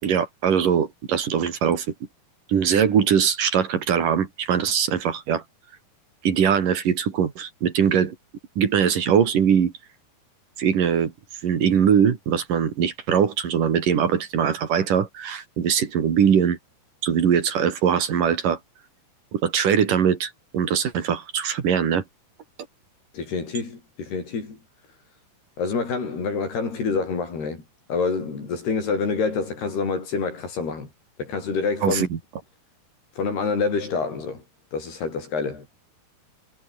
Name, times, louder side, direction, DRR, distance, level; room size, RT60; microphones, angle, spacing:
voice 1, 0.0-1.9 2.5-5.4 6.2-8.2 8.6-9.7 10.6-11.1 11.4-16.6 17.0-18.6 19.3-22.0 31.8-32.2, right 8 dB, 60° right, 4.0 m, -21 dB
voice 2, 23.1-24.6 25.6-27.6 27.9-30.9 31.2-32.1 33.2-34.4 34.7-35.7, left 4 dB, 90° left, 9.1 m, -27 dB
omnidirectional pair, 4.5 m